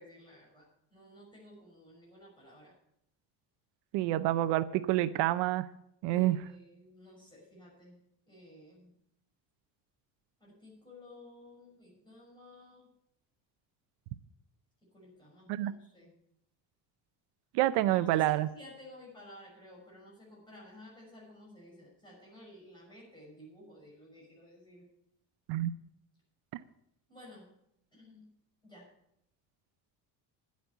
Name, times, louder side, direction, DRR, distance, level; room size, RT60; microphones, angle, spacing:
voice 1, 0.0-2.7 6.0-8.0 8.3-8.9 10.4-12.9 14.9-16.1 17.9-24.9 27.1-27.5 27.9-28.3 28.6-28.9, left 1 dB, 10° left, -3 dB, 6.3 m, -53 dB
voice 2, 3.9-5.7 6.0-6.4 15.5-15.7 17.5-18.5 25.5-25.7, right 15 dB, 70° right, 13 dB, 0.7 m, -28 dB
10.5 x 8.5 x 8.3 m, 0.77 s
cardioid pair, 165°, 42 cm